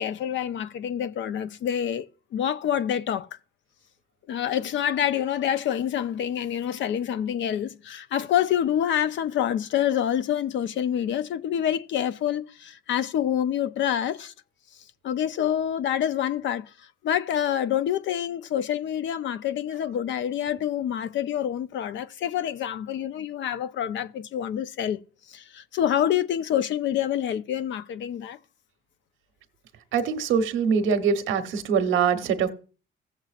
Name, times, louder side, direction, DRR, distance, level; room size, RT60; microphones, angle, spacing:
voice 1, 0.0-3.3 4.3-14.3 15.0-25.0 25.3-28.4, left 10 dB, 70° left, 0.6 m, -27 dB
voice 2, 29.9-32.5, right 6 dB, 90° right, 1.0 m, -23 dB
16.0 x 7.4 x 2.4 m
cardioid pair, 90°, 20 cm